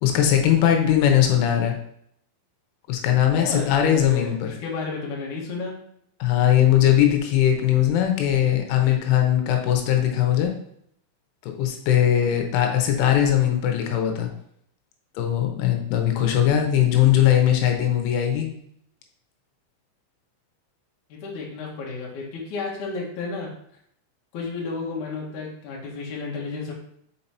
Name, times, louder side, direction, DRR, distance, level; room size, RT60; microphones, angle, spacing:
voice 1, 0.0-1.8 2.9-4.6 6.2-10.5 11.6-14.3 15.2-18.5, left 11 dB, 90° left, 3 dB, 3.2 m, -20 dB
voice 2, 3.3-5.8 21.1-23.5 24.3-26.7, left 4 dB, 70° left, -3 dB, 1.9 m, -32 dB
6.4 x 5.4 x 2.8 m, 0.70 s
omnidirectional pair, 5.6 m